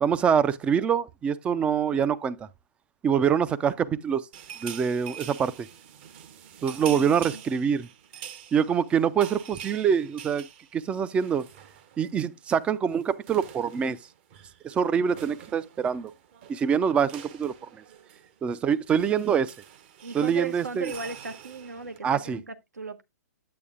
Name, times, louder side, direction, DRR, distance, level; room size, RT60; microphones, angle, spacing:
voice 1, 0.0-2.4 3.0-4.3 4.6-5.7 6.6-7.9 8.5-10.5 10.7-11.5 12.0-14.0 14.6-16.1 16.5-17.5 18.4-19.5 20.1-20.9 22.0-22.4, right 7 dB, 10° right, 0.4 m, -25 dB
sound 1, 4.3-12.2 12.5-12.7 12.9-22.0, right 9 dB, 40° right, 0.9 m, -45 dB
voice 2, 6.9-7.4 20.0-23.0, right 4 dB, 75° right, 1.0 m, -37 dB
8.6 x 8.3 x 2.4 m
figure-of-eight pair, 120°, 9 cm